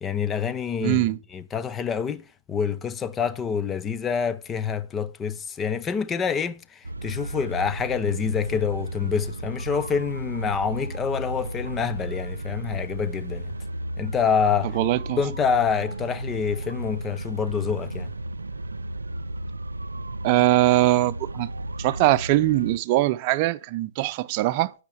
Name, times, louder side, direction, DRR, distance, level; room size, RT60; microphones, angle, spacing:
voice 1, 0.0-13.5 14.0-14.8 15.2-18.1, left 6 dB, 20° left, 0.8 m, -27 dB
voice 2, 0.8-1.2 14.7-15.2 20.2-21.5 21.8-24.7, right 16 dB, 40° right, 0.7 m, -21 dB
sound 1, 6.8-22.8, right 1 dB, 85° right, 0.5 m, -34 dB
10.0 x 6.6 x 7.2 m
figure-of-eight pair, 115°, 0 cm